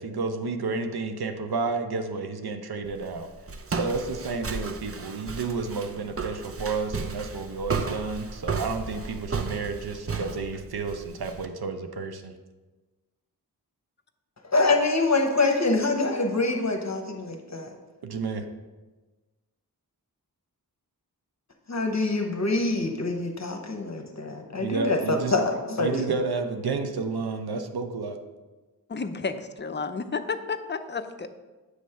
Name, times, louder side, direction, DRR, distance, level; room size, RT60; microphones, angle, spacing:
voice 1, 0.0-3.3 3.7-12.3 18.0-18.5 24.6-25.3 25.8-28.2, right 4 dB, 80° right, 6 dB, 0.7 m, -31 dB
Walk footsteps, 2.8-11.5, right 4 dB, 40° right, 0.6 m, -34 dB
voice 2, 14.4-17.7 21.7-26.0, left 2 dB, 45° left, 3 dB, 0.9 m, -25 dB
voice 3, 28.9-31.3, left 4 dB, 30° left, 8 dB, 0.5 m, -31 dB
7.9 x 3.1 x 5.6 m, 1.2 s
wide cardioid pair, 50°, 37 cm